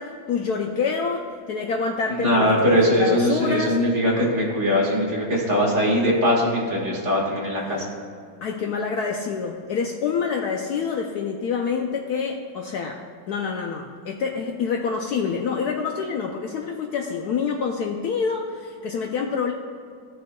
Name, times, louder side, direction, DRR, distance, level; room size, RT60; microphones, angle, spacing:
voice 1, 0.0-3.8 7.7-7.9 8.4-13.0 13.3-19.5, left 5 dB, 75° left, 2 dB, 0.9 m, -27 dB
voice 2, 2.2-7.8, equal, 40° right, -3 dB, 1.8 m, -21 dB
13.5 x 6.4 x 2.2 m, 2.4 s
omnidirectional pair, 2.1 m